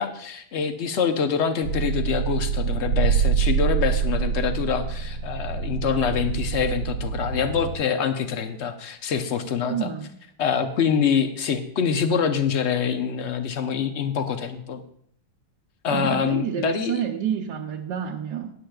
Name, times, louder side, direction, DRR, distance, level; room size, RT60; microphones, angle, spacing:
voice 1, 0.0-9.9 10.4-14.8 15.8-17.0, left 7 dB, 55° left, 8 dB, 0.8 m, -25 dB
sound 1, 1.6-7.8, right 7 dB, 85° right, 1.9 m, -25 dB
voice 2, 9.7-10.1 15.9-18.5, right 8 dB, 65° right, 0 dB, 1.3 m, -28 dB
15.5 x 10.0 x 2.3 m, 0.65 s
omnidirectional pair, 2.1 m